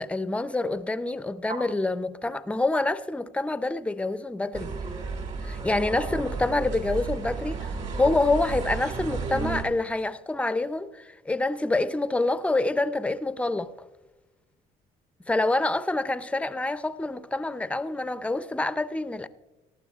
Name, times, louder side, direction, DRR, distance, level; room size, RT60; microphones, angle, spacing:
voice 1, 0.0-4.7 5.4-13.7 15.3-19.3, left 2 dB, 5° left, 0.5 m, -27 dB
sound 1, 1.4-6.1, right 3 dB, 65° right, 4.6 m, -45 dB
sound 2, 4.5-9.6, right 4 dB, 45° right, 2.0 m, -32 dB
19.0 x 12.5 x 2.4 m
cardioid pair, 110°, 17 cm